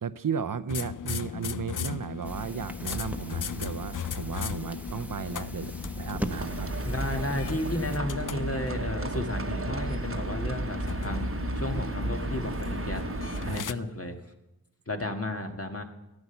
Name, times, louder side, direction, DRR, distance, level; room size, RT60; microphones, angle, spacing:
voice 1, 0.0-5.7 6.0-6.7 11.1-11.2 13.4-13.6, right 7 dB, 65° right, 13 dB, 0.6 m, -34 dB
sound 1, 0.7-13.7, left 8 dB, 60° left, 0.5 m, -38 dB
tomando el te, 2.2-8.0, equal, 5° right, 1.0 m, -39 dB
Livestock farm animals working animals, 6.3-13.6, right 2 dB, 40° right, 1.0 m, -33 dB
voice 2, 6.8-13.0 13.4-14.2 14.9-15.8, left 2 dB, 40° left, 5 dB, 1.7 m, -33 dB
14.0 x 9.6 x 7.0 m, 0.94 s
wide cardioid pair, 45°, 36 cm